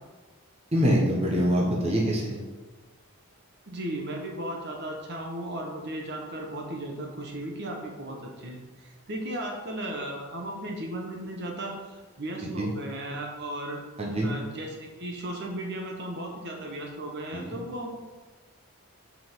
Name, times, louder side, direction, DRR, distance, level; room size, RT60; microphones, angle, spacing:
voice 1, 0.7-2.4 12.6-12.7 14.0-14.3 17.3-17.6, equal, 30° right, -2 dB, 1.1 m, -25 dB
voice 2, 3.7-13.8 14.2-17.9, right 1 dB, 50° right, 0 dB, 1.2 m, -36 dB
5.9 x 4.7 x 6.2 m, 1.3 s
head